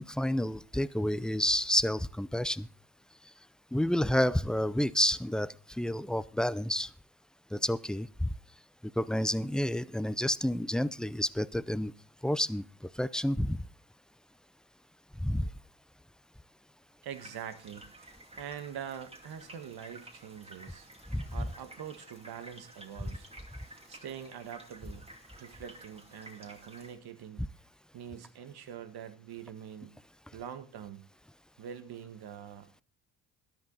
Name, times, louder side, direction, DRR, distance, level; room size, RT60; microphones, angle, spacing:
voice 1, 0.0-2.7 3.7-6.9 7.5-8.3 9.0-11.9 12.2-12.6 13.0-13.6 15.2-15.5 21.1-21.5, left 1 dB, ahead, 0.5 m, -29 dB
voice 2, 17.0-20.9 21.3-25.0 25.4-27.5 27.9-30.0 30.3-31.0 31.6-32.8, right 9 dB, 65° right, 1.6 m, -44 dB
sound 1, 17.1-26.9, right 1 dB, 15° right, 2.5 m, -53 dB
13.5 x 10.5 x 4.0 m
supercardioid pair, 65°, 40 cm